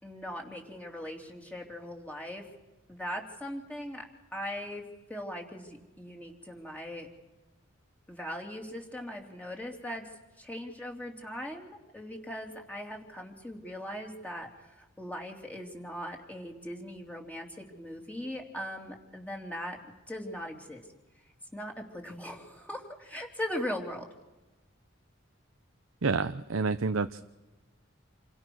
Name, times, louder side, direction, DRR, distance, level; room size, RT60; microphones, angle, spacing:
voice 1, 0.0-2.5 2.9-4.0 4.3-4.8 5.1-7.1 8.1-10.1 10.4-19.8 20.1-20.8 21.5-24.1, equal, 5° left, 1 dB, 3.3 m, -39 dB
voice 2, 26.0-27.2, right 4 dB, 80° right, 10 dB, 0.7 m, -29 dB
29.0 x 23.5 x 6.3 m, 1.1 s
head